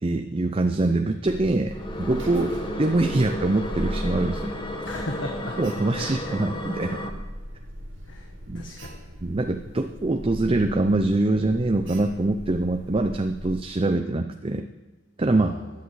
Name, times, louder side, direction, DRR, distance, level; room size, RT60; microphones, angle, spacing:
voice 1, 0.0-4.5 5.6-7.0 8.5-8.6 9.2-14.7 15.2-15.6, right 2 dB, 30° right, 6 dB, 0.5 m, -24 dB
Alarm, 1.2-13.6, equal, 75° right, 2.5 m, -39 dB
sound 1, 1.7-7.1, left 1 dB, 25° left, 1.4 m, -33 dB
voice 2, 4.8-5.6 5.9-6.4 8.1-8.3 8.5-9.0 15.3-15.6, left 1 dB, 65° left, 1 dB, 1.6 m, -36 dB
16.0 x 10.5 x 4.8 m, 1.2 s
head